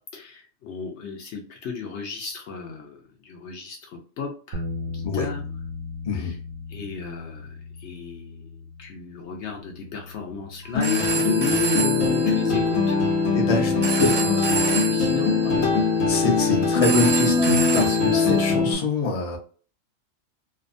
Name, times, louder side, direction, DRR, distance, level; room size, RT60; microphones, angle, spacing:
voice 1, 0.1-3.0 3.2-5.4 6.1-6.4 6.7-8.5 8.8-13.0 14.0-15.8, left 5 dB, 65° left, 2 dB, 0.8 m, -33 dB
sound 1, 4.5-10.8, left 3 dB, 85° right, 1.0 m, -37 dB
voice 2, 6.1-6.4 13.3-14.1 16.1-19.4, left 3 dB, 40° left, 0 dB, 0.6 m, -25 dB
Telephone, 10.6-18.5, right 6 dB, 30° right, 0.5 m, -30 dB
sound 2, 10.7-18.7, left 4 dB, 90° left, 1.1 m, -22 dB
2.7 x 2.1 x 2.5 m, 0.40 s
omnidirectional pair, 1.3 m